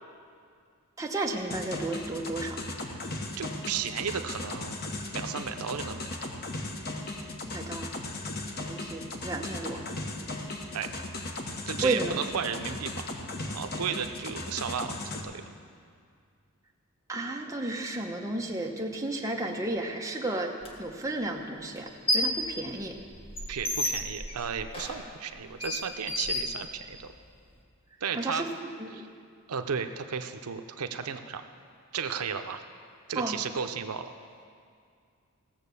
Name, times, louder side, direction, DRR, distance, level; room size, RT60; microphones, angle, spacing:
voice 1, 1.0-2.6 7.5-7.9 8.7-9.8 11.8-12.1 17.1-23.0 28.1-28.5 28.8-29.0 33.2-33.4, right 2 dB, 15° right, 0 dB, 0.9 m, -33 dB
sound 1, 1.5-15.2, left 2 dB, 45° left, 1.1 m, -37 dB
voice 2, 3.4-4.8 5.1-6.3 10.7-10.9 11.7-12.9 13.5-15.0 15.2-15.4 23.5-27.1 28.0-28.5 28.9-29.1 29.5-31.4 31.9-32.6 33.1-34.1, right 7 dB, 85° right, 7 dB, 0.6 m, -34 dB
sound 2, 20.6-20.7 21.7-22.4 22.8-27.1, left 1 dB, 25° left, 1.3 m, -32 dB
16.5 x 7.2 x 6.8 m, 2.2 s
head